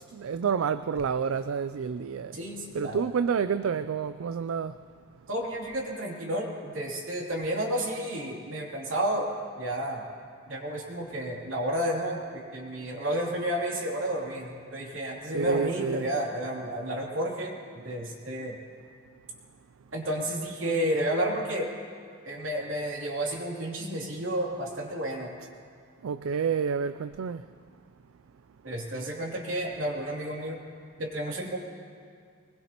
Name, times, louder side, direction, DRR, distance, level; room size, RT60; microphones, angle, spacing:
voice 1, 0.1-2.4 2.7-4.8 15.3-16.0 26.0-27.4, right 6 dB, 85° right, 0.4 m, -29 dB
voice 2, 2.3-3.0 5.3-9.3 9.6-10.0 10.5-18.6 19.9-21.7 22.2-25.3 28.6-30.6 31.0-31.6, right 1 dB, 70° right, 3.0 m, -31 dB
23.0 x 20.5 x 3.0 m
head